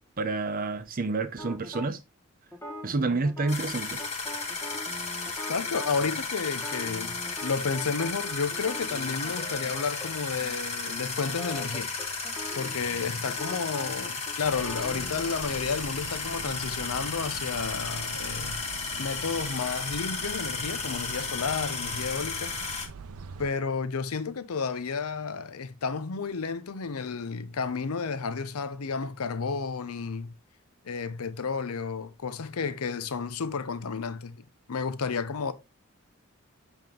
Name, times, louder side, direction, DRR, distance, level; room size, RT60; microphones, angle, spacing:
voice 1, 0.2-2.0 2.8-4.0, right 3 dB, 40° right, 0.7 m, -29 dB
sound 1, 1.4-1.9 2.5-5.9 6.5-10.1 10.4-10.5 10.9-15.4, equal, 10° left, 1.0 m, -42 dB
sound 2, 3.5-22.9, left 4 dB, 30° left, 1.4 m, -34 dB
voice 2, 5.5-7.2 7.4-11.9 12.6-18.6 19.0-22.5 23.4-30.3 30.8-35.5, left 5 dB, 85° left, 0.6 m, -32 dB
sound 3, 14.4-23.5, right 5 dB, 80° right, 0.5 m, -44 dB
7.6 x 3.6 x 3.6 m
head